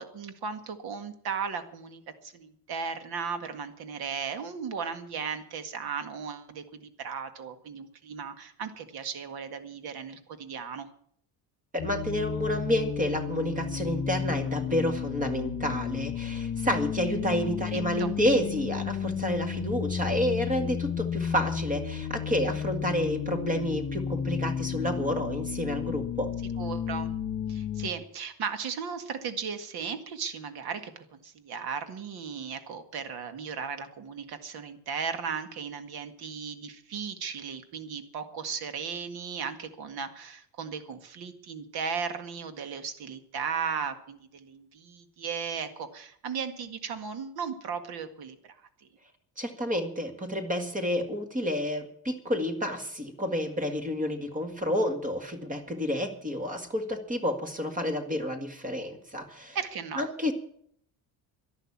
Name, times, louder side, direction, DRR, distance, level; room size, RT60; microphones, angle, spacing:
voice 1, 0.0-10.9 17.7-18.1 26.6-27.1 27.5-48.9 59.5-60.0, right 6 dB, 65° right, 9 dB, 2.0 m, -36 dB
voice 2, 11.7-26.3 49.4-59.6 60.0-60.3, equal, 20° right, 7 dB, 1.9 m, -30 dB
sound 1, 11.8-27.9, left 8 dB, 35° left, 1.6 m, -33 dB
12.0 x 11.5 x 8.6 m, 0.64 s
cardioid pair, 145°, 40 cm